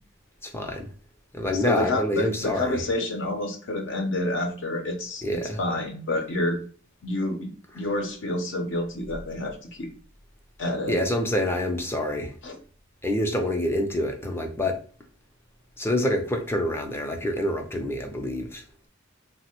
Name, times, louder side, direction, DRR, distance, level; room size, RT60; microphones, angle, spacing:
voice 1, 0.4-0.9 1.3-2.8 5.2-5.6 10.9-12.3 13.0-14.8 15.8-18.6, left 1 dB, 10° left, 0.4 m, -27 dB
voice 2, 1.6-6.6 7.0-7.5 7.7-9.9 10.6-10.9 12.4-12.6, left 1 dB, 65° left, 0.6 m, -28 dB
3.2 x 2.0 x 2.8 m
head